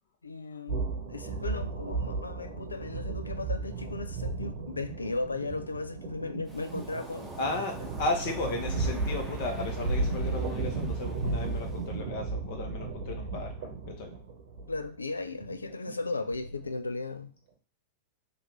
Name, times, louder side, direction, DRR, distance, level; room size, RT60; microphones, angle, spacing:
voice 1, 0.2-7.5 14.7-17.3, left 3 dB, 80° left, 0.3 m, -36 dB
sound 1, 0.7-16.8, right 3 dB, 55° right, 1.0 m, -34 dB
Waves surf, 6.5-11.9, right 2 dB, 10° right, 0.8 m, -47 dB
voice 2, 7.4-13.5 13.8-14.1, left 2 dB, 50° left, 1.0 m, -34 dB
3.1 x 2.5 x 3.2 m
figure-of-eight pair, 95°, 0 cm